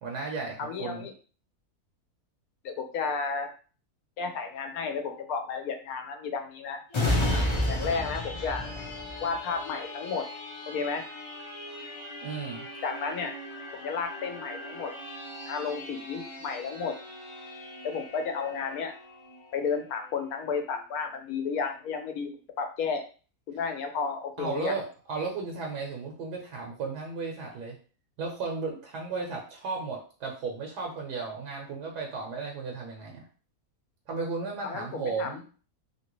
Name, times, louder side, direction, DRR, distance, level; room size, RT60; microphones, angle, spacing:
voice 1, 0.0-1.1 12.2-12.7 24.4-27.8 28.2-33.2 34.1-35.4, right 4 dB, 80° right, 0 dB, 1.3 m, -34 dB
voice 2, 0.6-1.1 2.6-3.5 4.2-6.8 7.7-8.7 9.2-10.2 10.7-11.0 12.8-13.4 13.7-14.9 15.5-16.9 17.8-18.9 19.5-22.3 22.6-23.0 23.5-24.7 34.6-35.3, left 5 dB, 70° left, 6 dB, 1.0 m, -32 dB
sound 1, 6.9-20.2 20.7-20.8, left 1 dB, 50° left, 0.3 m, -35 dB
2.9 x 2.8 x 2.9 m, 0.38 s
omnidirectional pair, 1.7 m